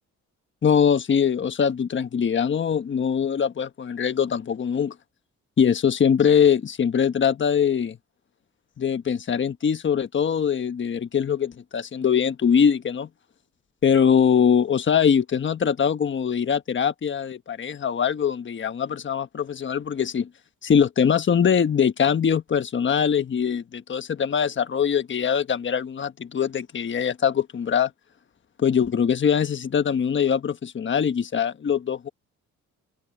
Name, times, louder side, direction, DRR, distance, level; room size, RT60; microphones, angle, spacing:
voice 1, 0.6-4.9 5.6-8.0 8.8-13.1 13.8-20.3 20.6-27.9 28.6-32.1, left 7 dB, 40° left, 1.3 m, -22 dB
open air
cardioid pair, 90°, 30 cm